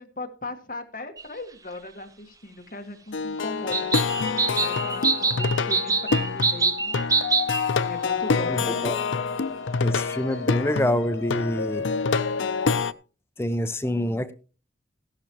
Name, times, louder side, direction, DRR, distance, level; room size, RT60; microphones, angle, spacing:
voice 1, 0.0-3.9 4.6-7.0 7.9-9.0, left 2 dB, 45° left, 5 dB, 1.7 m, -38 dB
sound 1, 1.2-1.3 3.7-7.7, right 4 dB, 20° right, 0.8 m, -25 dB
Plucked string instrument, 3.1-12.9, left 5 dB, 90° left, 0.6 m, -26 dB
voice 2, 8.5-9.0 9.8-11.8 13.4-14.3, left 1 dB, 15° left, 10 dB, 0.7 m, -26 dB
15.0 x 11.5 x 3.0 m, 0.35 s
head